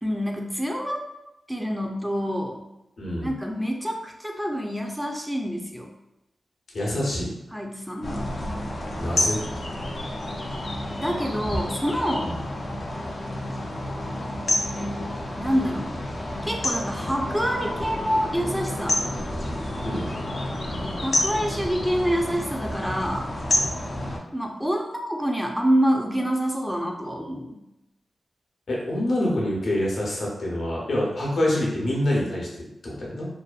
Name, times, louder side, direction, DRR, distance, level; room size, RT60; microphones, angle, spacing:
voice 1, 0.0-1.0 1.5-2.6 3.2-5.9 7.5-8.3 10.9-12.3 15.4-16.0 16.4-19.1 21.0-23.4 24.3-27.6, equal, ahead, 1 dB, 0.5 m, -27 dB
voice 2, 3.0-3.3 6.7-7.3 9.0-9.4 12.2-12.4 19.8-20.1 28.7-33.3, left 1 dB, 70° left, -4 dB, 0.8 m, -26 dB
sound 1, 8.0-24.2, left 1 dB, 50° left, 0.5 m, -29 dB
2.6 x 2.2 x 2.4 m, 0.89 s
cardioid pair, 50°, 0 cm